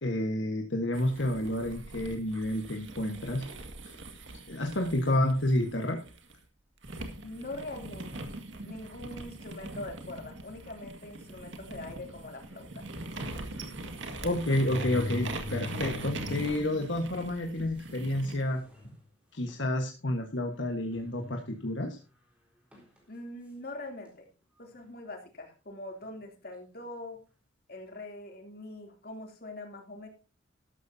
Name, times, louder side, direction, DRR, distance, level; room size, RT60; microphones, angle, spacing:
voice 1, 0.0-3.4 3.9-4.0 4.5-6.0 14.2-18.6 19.3-22.0, left 1 dB, 70° left, 3 dB, 1.4 m, -30 dB
sound 1, 0.9-6.3 6.8-18.4, right 2 dB, 75° right, 2.0 m, -42 dB
voice 2, 7.2-8.1 8.6-12.9 23.1-24.3 24.6-27.2 27.7-30.1, left 2 dB, 50° left, 3 dB, 3.0 m, -43 dB
sound 2, 10.8-11.0 11.8-11.9 12.2-12.3 13.6-13.7 14.4-16.7 17.1-17.2 18.0-18.1 18.5-18.9 19.5-19.6 20.9-21.7 22.7-23.0, left 3 dB, 5° right, 4.2 m, -40 dB
13.0 x 12.5 x 2.8 m, 0.33 s
head